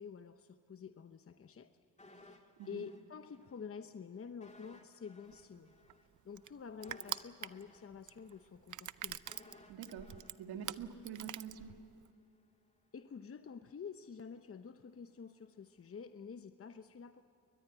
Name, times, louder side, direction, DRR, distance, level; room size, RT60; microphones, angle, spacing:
voice 1, 0.0-1.7 2.2-5.7 6.2-9.2 12.9-17.2, left 6 dB, 40° left, 9 dB, 1.0 m, -49 dB
sound 1, 2.0-3.6 3.9-4.0 4.4-11.5 11.8-11.9, left 2 dB, 20° left, 2.4 m, -61 dB
Crushing, 5.3-12.1, right 11 dB, 55° right, 0.7 m, -46 dB
voice 2, 9.7-10.1 10.4-11.8, right 7 dB, 90° right, 6 dB, 1.8 m, -46 dB
22.0 x 21.0 x 9.2 m, 2.7 s
cardioid pair, 75°, 36 cm